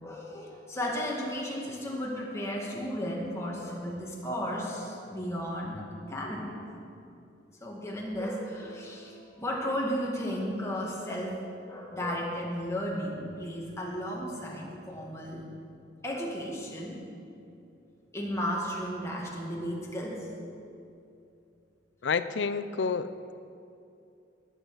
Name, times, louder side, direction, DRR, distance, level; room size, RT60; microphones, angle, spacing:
voice 1, 0.0-6.6 7.6-15.5 16.0-17.0 18.1-20.3, equal, 15° left, -3 dB, 2.0 m, -34 dB
voice 2, 22.0-23.3, left 5 dB, 75° left, 13 dB, 0.5 m, -29 dB
19.0 x 8.3 x 4.9 m, 2.6 s
head